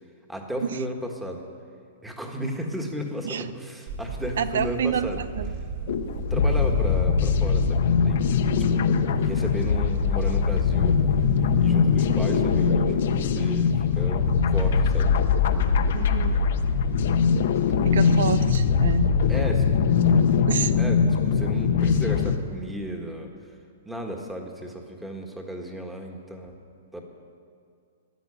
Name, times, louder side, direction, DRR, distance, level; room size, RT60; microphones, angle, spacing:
voice 1, 0.3-1.4 2.0-5.2 6.3-8.2 8.6-8.8 9.1-11.0 11.6-15.2 17.7-18.3 19.3-19.9 20.8-21.0 21.2-23.3 23.8-26.5 26.9-27.0, equal, 5° right, 2 dB, 1.6 m, -34 dB
Camera, 3.9-18.6, right 3 dB, 50° right, 2.1 m, -37 dB
voice 2, 4.4-5.5 15.9-16.4 17.8-19.2 20.5-20.7, right 8 dB, 75° right, 14 dB, 0.5 m, -28 dB
sound 1, 5.9-22.4, left 6 dB, 60° left, 1.0 m, -22 dB
13.5 x 10.0 x 9.8 m, 2.4 s
hypercardioid pair, 155°, 0 cm